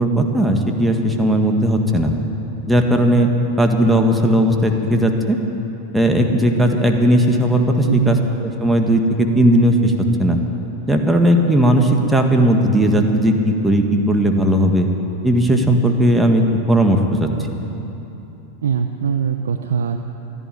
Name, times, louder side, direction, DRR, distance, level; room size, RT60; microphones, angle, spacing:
voice 1, 0.0-2.1 2.7-3.3 3.6-5.4 5.9-9.9 10.2-10.4 10.9-14.9 15.2-16.4 16.7-17.3, right 1 dB, 5° right, 3 dB, 1.7 m, -16 dB
voice 2, 7.8-8.2 18.6-20.0, right 7 dB, 80° right, 7 dB, 0.6 m, -21 dB
14.0 x 11.0 x 9.2 m, 3.0 s
hypercardioid pair, 100°, 0 cm